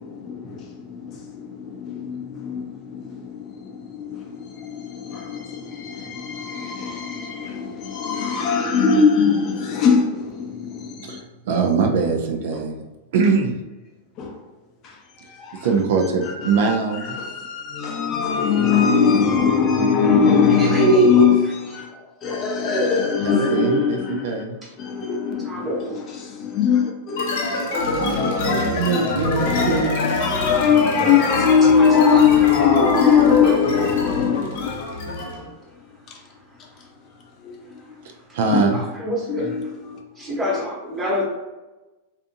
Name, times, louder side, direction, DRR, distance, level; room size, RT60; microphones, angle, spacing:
voice 1, 0.0-11.2 12.5-12.6 14.2-14.4 14.8-21.9 22.2-24.4 24.8-29.1 29.4-34.7 35.4-36.3 36.6-38.1 38.4-38.9 39.3-40.0 40.3-40.4, left 6 dB, 35° left, 0.5 m, -22 dB
voice 2, 11.0-12.7 13.1-13.5 15.6-17.2 23.2-24.0 24.2-24.5 28.5-30.2 38.3-38.8, right 5 dB, 70° right, 0.4 m, -22 dB
voice 3, 20.6-21.3 25.5-25.9 31.8-32.2 32.8-33.5 38.7-39.3 40.2-41.2, right 1 dB, 15° right, 0.9 m, -23 dB
sound 1, 27.2-35.4, left 2 dB, 70° left, 0.8 m, -25 dB
2.6 x 2.5 x 2.5 m
hypercardioid pair, 130°, 0 cm